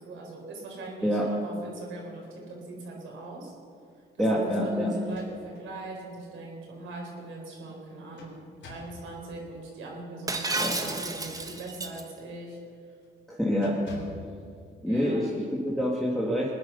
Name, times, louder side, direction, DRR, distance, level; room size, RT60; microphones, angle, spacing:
voice 1, 0.0-3.5 4.3-8.4 8.7-12.6 14.8-15.3, right 2 dB, 85° right, -1 dB, 4.2 m, -40 dB
voice 2, 4.2-4.9 10.6-10.7 13.3-13.7 14.8-16.5, equal, ahead, -4 dB, 2.3 m, -26 dB
sound 1, 5.0-5.7 6.1-6.2 7.7-9.0 11.1-12.0 12.5-12.7 13.0-13.2 13.6-14.3, left 2 dB, 70° left, 3.6 m, -46 dB
Shatter, 10.3-12.0, right 2 dB, 15° right, 1.3 m, -31 dB
20.0 x 9.9 x 5.6 m, 2.3 s
cardioid pair, 90°, 20 cm